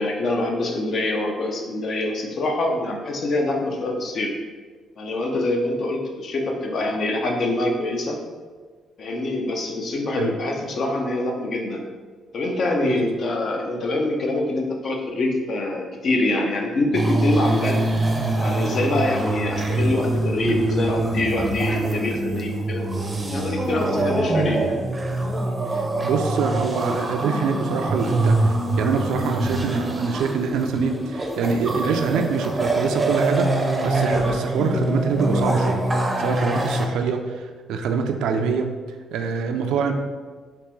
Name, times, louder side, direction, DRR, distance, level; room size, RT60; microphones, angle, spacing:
voice 1, 0.0-4.3 5.0-8.2 9.0-11.8 12.3-17.8 18.4-22.8 23.3-24.8, left 2 dB, 55° left, 2 dB, 0.6 m, -25 dB
sound 1, 16.9-36.9, right 2 dB, 20° right, 0.5 m, -24 dB
voice 2, 25.7-33.5 33.8-35.8 36.2-38.7 39.1-39.9, right 5 dB, 85° right, 6 dB, 0.3 m, -25 dB
3.5 x 2.9 x 3.1 m, 1.5 s
cardioid pair, 90°, 0 cm